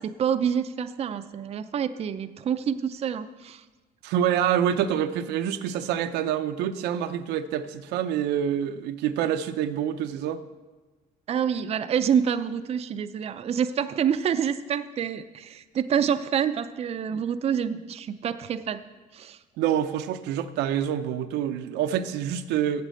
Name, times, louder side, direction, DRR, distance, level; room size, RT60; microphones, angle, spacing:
voice 1, 0.0-3.6 11.3-18.8 19.1-19.4, right 8 dB, 35° right, 10 dB, 0.5 m, -27 dB
voice 2, 4.0-10.4 17.1-17.2 19.6-22.8, right 9 dB, 90° right, 9 dB, 0.6 m, -26 dB
8.4 x 7.5 x 7.6 m, 1.2 s
cardioid pair, 110°, 17 cm